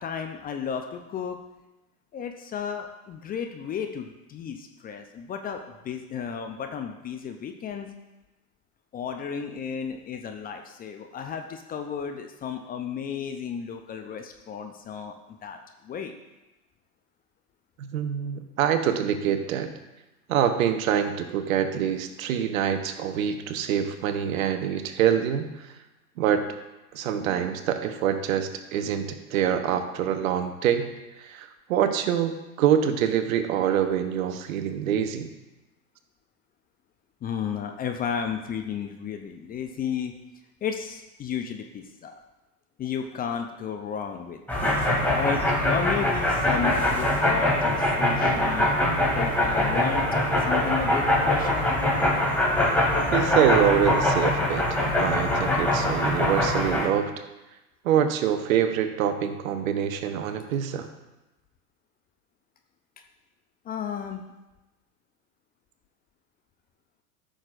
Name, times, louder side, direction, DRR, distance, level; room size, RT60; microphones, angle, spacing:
voice 1, 0.0-1.4 2.1-7.9 8.9-15.2 15.4-16.1 37.2-40.2 40.6-42.1 42.8-48.7 49.1-51.7 63.6-64.2, left 7 dB, 20° left, 5 dB, 0.5 m, -33 dB
voice 2, 17.8-19.7 20.3-25.7 26.2-26.5 26.9-30.9 31.2-35.3 53.1-54.7 55.0-57.1 57.8-60.9, right 9 dB, 60° right, 8 dB, 1.0 m, -25 dB
sound 1, 44.5-56.9, left 1 dB, 5° left, 2.4 m, -23 dB
14.0 x 6.4 x 2.6 m, 1.0 s
hypercardioid pair, 95°, 46 cm